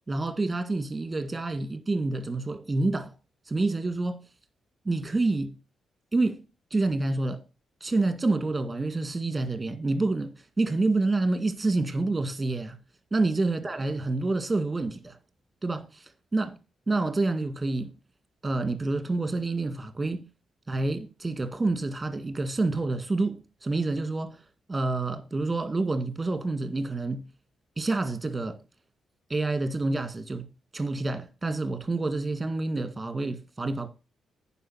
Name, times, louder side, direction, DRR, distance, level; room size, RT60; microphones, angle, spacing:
voice 1, 0.1-3.1 3.5-4.2 4.9-5.5 6.1-6.4 6.7-7.4 7.8-12.8 13.1-15.2 15.6-16.1 16.3-16.6 16.9-18.0 18.4-20.2 20.7-24.4 24.7-27.2 27.8-28.6 29.3-30.5 30.7-33.9, right 2 dB, 25° right, 1.9 m, -28 dB
9.4 x 5.9 x 6.3 m
hypercardioid pair, 45°, 0 cm